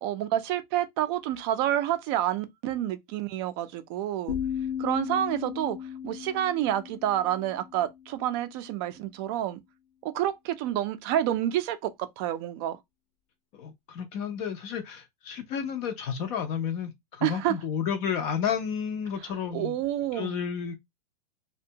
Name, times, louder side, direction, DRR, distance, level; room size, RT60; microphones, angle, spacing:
voice 1, 0.0-4.3 4.8-5.8 6.0-9.6 10.0-12.8 17.2-17.5 19.5-20.3, right 12 dB, 40° right, 0.4 m, -28 dB
sound 1, 4.3-8.2, left 9 dB, 75° left, 0.6 m, -35 dB
voice 2, 13.5-19.8 20.1-20.7, left 7 dB, 30° left, 0.4 m, -31 dB
2.6 x 2.1 x 2.7 m
supercardioid pair, 145°, 21 cm